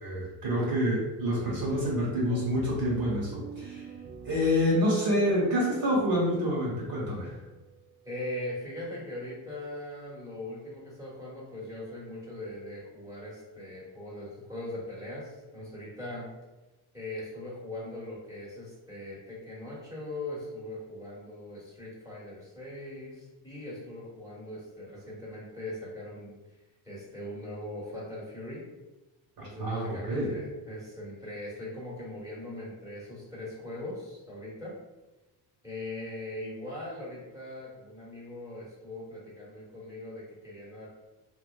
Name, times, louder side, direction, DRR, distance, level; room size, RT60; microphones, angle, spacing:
voice 1, 0.0-3.9 4.2-7.3 29.4-30.3, equal, 50° right, -4 dB, 1.4 m, -27 dB
sound 1, 1.3-8.8, right 5 dB, 25° right, 0.4 m, -46 dB
voice 2, 8.0-16.3 16.9-26.4 26.8-28.6 29.4-34.7 35.6-40.9, left 1 dB, 10° right, -7 dB, 1.4 m, -40 dB
2.6 x 2.2 x 2.3 m, 1.1 s
supercardioid pair, 65°, 44 cm